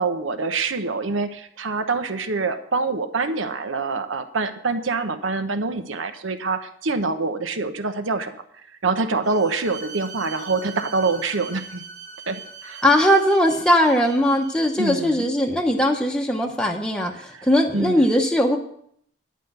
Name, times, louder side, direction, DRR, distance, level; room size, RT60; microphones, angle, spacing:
voice 1, 0.0-8.4 8.8-11.8 12.3-12.8 14.8-15.2 17.3-17.5 17.7-18.1, right 3 dB, 85° right, 9 dB, 0.9 m, -25 dB
Bowed string instrument, 9.2-14.7, right 4 dB, 40° right, 1.2 m, -41 dB
voice 2, 12.8-18.6, equal, 5° left, 1 dB, 0.8 m, -19 dB
11.0 x 5.2 x 7.9 m, 0.69 s
head